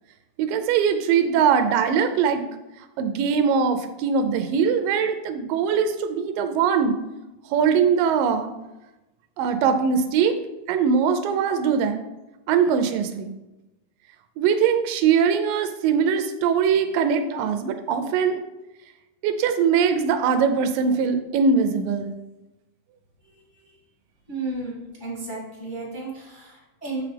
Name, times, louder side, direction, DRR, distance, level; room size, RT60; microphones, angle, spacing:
voice 1, 0.4-2.4 3.0-6.9 7.5-8.5 9.4-10.3 10.7-12.0 12.5-13.3 14.4-18.4 19.2-22.1, right 6 dB, 85° right, 7 dB, 2.3 m, -21 dB
voice 2, 24.3-27.0, right 2 dB, 10° left, -5 dB, 1.3 m, -33 dB
7.3 x 6.0 x 3.4 m, 1.0 s
omnidirectional pair, 3.9 m